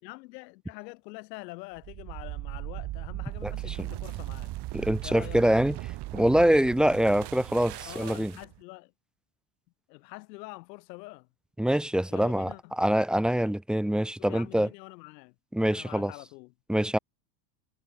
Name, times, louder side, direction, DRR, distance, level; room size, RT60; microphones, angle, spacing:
voice 1, 0.0-4.6 5.0-5.4 7.9-8.9 9.9-11.3 12.1-12.7 14.2-15.4 15.7-16.5, left 24 dB, 90° left, 5.7 m, -45 dB
sound 1, 1.8-8.6, right 18 dB, 55° right, 7.6 m, -38 dB
voice 2, 3.4-3.9 4.7-5.8 6.1-8.3 11.6-12.5 12.8-14.7 15.5-16.1 16.7-17.0, right 1 dB, ahead, 0.9 m, -24 dB
cardioid pair, 140°, 48 cm